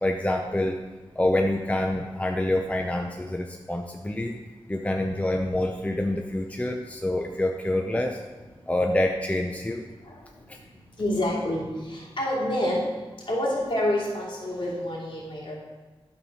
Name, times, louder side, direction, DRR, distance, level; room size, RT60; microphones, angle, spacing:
voice 1, 0.0-0.8 1.2-4.3 4.7-8.2 8.7-9.8, left 1 dB, 15° left, 3 dB, 0.6 m, -26 dB
voice 2, 11.0-11.6 11.9-12.8 13.3-15.5, left 1 dB, 60° left, -5 dB, 3.0 m, -27 dB
12.0 x 4.5 x 5.4 m, 1.3 s
wide cardioid pair, 90°, 10 cm